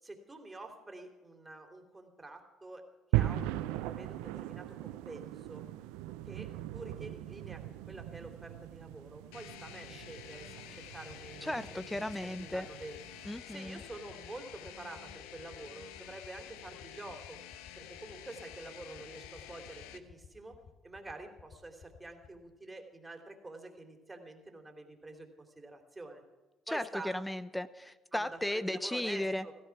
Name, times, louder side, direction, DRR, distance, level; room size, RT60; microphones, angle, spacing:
voice 1, 0.0-2.9 3.1-5.6 6.2-11.8 12.2-13.1 13.5-17.4 17.7-26.2 26.7-27.1 28.1-29.5, right 2 dB, 20° right, 4 dB, 3.2 m, -48 dB
sound 1, 3.1-13.4, right 15 dB, 80° right, 0.6 m, -39 dB
sound 2, 9.3-20.0, left 10 dB, 80° left, 0.9 m, -50 dB
sound 3, 11.1-22.4, left 6 dB, 60° left, 2.2 m, -54 dB
voice 2, 11.4-12.7 13.3-13.8 26.7-29.4, left 1 dB, 10° left, 14 dB, 0.8 m, -35 dB
16.0 x 15.0 x 6.0 m, 1.2 s
hypercardioid pair, 60°, 0 cm